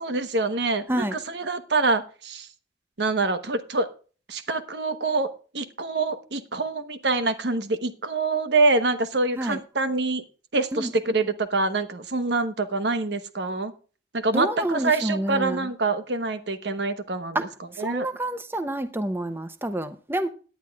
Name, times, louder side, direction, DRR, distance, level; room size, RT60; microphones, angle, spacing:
voice 1, 0.0-2.5 3.0-3.9 4.3-10.2 10.5-13.7 14.1-17.5 17.8-18.1, right 3 dB, 65° right, 10 dB, 1.1 m, -25 dB
voice 2, 14.3-15.7 17.3-17.4 17.7-20.3, right 1 dB, 10° right, 10 dB, 0.6 m, -28 dB
18.0 x 10.0 x 2.3 m, 0.38 s
head